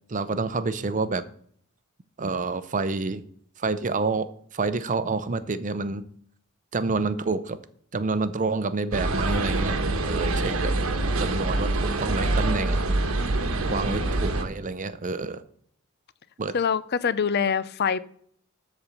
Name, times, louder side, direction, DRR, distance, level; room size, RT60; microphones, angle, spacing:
voice 1, 0.1-1.2 2.2-3.2 3.6-6.0 6.7-7.6 7.9-9.8 10.0-10.7 11.2-12.8 13.7-15.4 16.4-16.5, right 3 dB, 35° right, 0.6 m, -28 dB
sound 1, 8.9-14.4, right 2 dB, 75° right, 1.2 m, -25 dB
voice 2, 10.2-11.1 13.6-14.1 16.5-18.0, left 6 dB, 50° left, 0.5 m, -27 dB
13.0 x 4.4 x 7.0 m
head